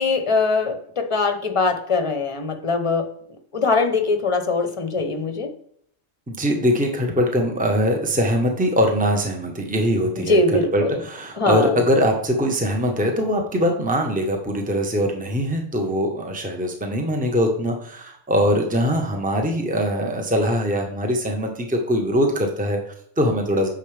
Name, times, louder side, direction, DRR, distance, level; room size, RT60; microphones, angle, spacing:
voice 1, 0.0-3.1 3.5-5.5 10.2-11.0 11.4-11.8, left 3 dB, 30° left, 7 dB, 1.0 m, -22 dB
voice 2, 6.3-23.7, equal, 5° right, 2 dB, 1.1 m, -22 dB
9.2 x 6.5 x 3.4 m, 0.66 s
omnidirectional pair, 1.2 m